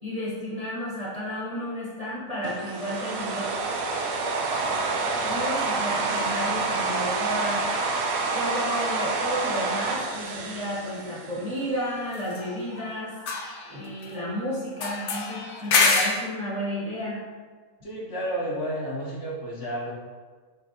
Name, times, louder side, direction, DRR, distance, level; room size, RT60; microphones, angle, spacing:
voice 1, 0.0-3.5 5.2-8.0 8.3-13.2 13.7-17.2, equal, 30° right, -8 dB, 0.8 m, -32 dB
sound 1, 2.4-11.7, right 3 dB, 65° right, 0.6 m, -28 dB
sound 2, 8.8-8.9 12.1-12.9 13.2-14.3 14.8-16.3, left 4 dB, 75° left, 0.5 m, -26 dB
voice 2, 17.8-19.9, right 1 dB, 55° left, -5 dB, 1.2 m, -31 dB
5.5 x 3.1 x 2.9 m, 1.5 s
omnidirectional pair, 1.6 m